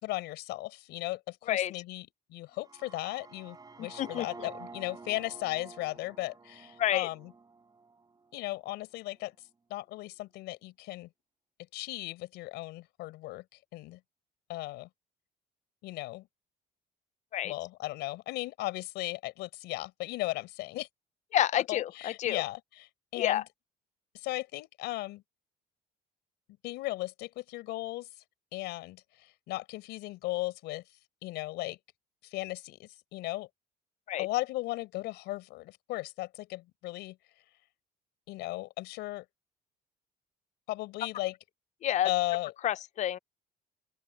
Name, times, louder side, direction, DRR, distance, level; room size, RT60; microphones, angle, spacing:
voice 1, 0.0-7.3 8.3-9.3 9.7-11.1 11.7-13.4 13.7-14.0 14.5-14.9 15.8-16.3 17.4-20.9 21.5-23.4 24.1-25.2 26.6-28.1 28.5-30.8 31.2-31.8 32.2-33.5 34.2-37.2 38.3-39.2 40.7-41.3 42.0-42.5, left 18 dB, 90° left, 4.9 m, -36 dB
sound 1, 2.5-8.5, right 4 dB, 25° right, 5.7 m, -50 dB
voice 2, 3.8-4.3 6.8-7.1 17.3-17.5 21.3-22.4 23.2-23.4 34.1-34.3 41.8-42.1 42.6-43.2, left 11 dB, 45° left, 0.4 m, -29 dB
open air
cardioid pair, 110°, 17 cm